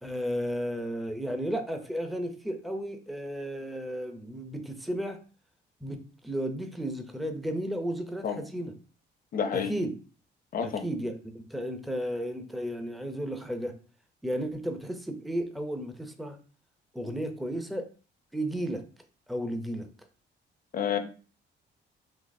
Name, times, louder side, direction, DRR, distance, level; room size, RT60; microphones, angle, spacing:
voice 1, 0.0-5.2 5.8-8.7 9.5-9.9 10.6-11.1 11.5-13.7 14.2-16.4 16.9-17.9 18.3-18.8 19.3-19.9, equal, ahead, 0.5 m, -33 dB
voice 2, 9.3-9.7 10.5-10.8 20.7-21.0, left 7 dB, 45° left, 0.6 m, -29 dB
3.9 x 2.7 x 2.6 m
cardioid pair, 90°, 20 cm